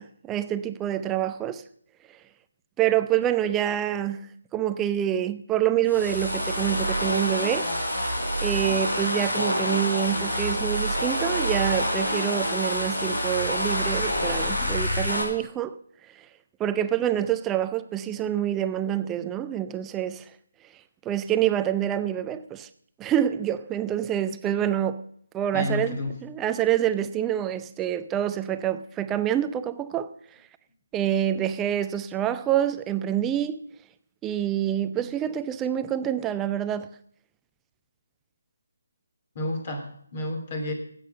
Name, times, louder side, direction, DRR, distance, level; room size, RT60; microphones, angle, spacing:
voice 1, 0.0-1.6 2.8-4.2 4.5-7.7 8.4-15.7 16.6-20.2 21.1-22.7 23.0-25.0 25.3-30.1 30.9-33.6 34.2-36.9, right 11 dB, 10° right, 0.5 m, -26 dB
sound 1, 5.9-15.2, equal, 75° left, 4.9 m, -27 dB
voice 2, 25.5-26.2 39.3-40.7, left 1 dB, 35° left, 2.7 m, -30 dB
12.5 x 8.5 x 6.7 m
figure-of-eight pair, 150°, 0 cm